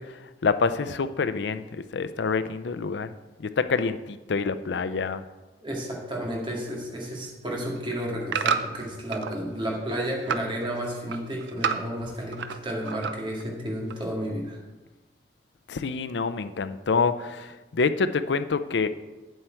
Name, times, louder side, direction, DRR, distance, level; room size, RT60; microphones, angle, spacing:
voice 1, 0.4-3.1 3.4-5.2 15.7-18.9, left 4 dB, 80° left, 12 dB, 0.5 m, -27 dB
voice 2, 5.6-14.6, equal, 30° right, -2 dB, 2.0 m, -32 dB
sound 1, 7.5-9.4 9.7-10.5 10.8-12.6 12.8-13.4 13.9-14.0, right 6 dB, 90° right, 0.6 m, -30 dB
9.0 x 7.8 x 4.5 m, 1.2 s
head